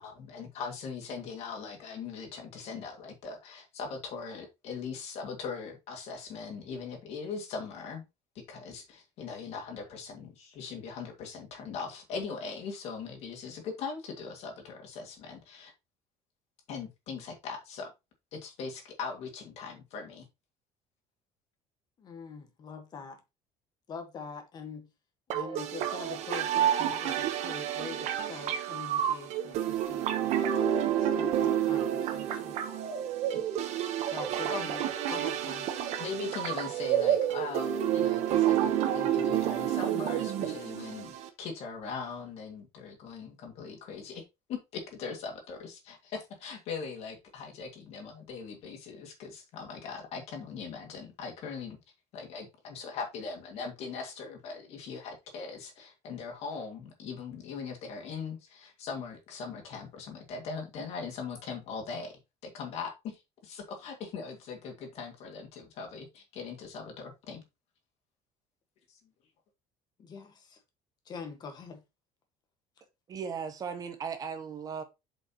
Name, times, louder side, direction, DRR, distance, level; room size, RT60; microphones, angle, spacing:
voice 1, 0.0-8.1 8.5-15.7 16.7-17.9 18.3-20.3 33.3-33.4 34.5-34.7 36.0-44.2 44.5-51.8 52.1-67.4 68.9-69.0, left 5 dB, 50° left, 2.2 m, -40 dB
voice 2, 22.0-23.2 23.9-24.9 25.3-30.4 31.0-32.6 34.0-35.7 70.0-70.6 71.0-71.8, left 5 dB, 30° left, 1.4 m, -44 dB
sound 1, 25.3-41.3, right 10 dB, 55° right, 1.1 m, -29 dB
voice 3, 73.1-74.8, right 6 dB, 25° right, 0.8 m, -37 dB
7.7 x 5.2 x 3.0 m
cardioid pair, 175°, 14 cm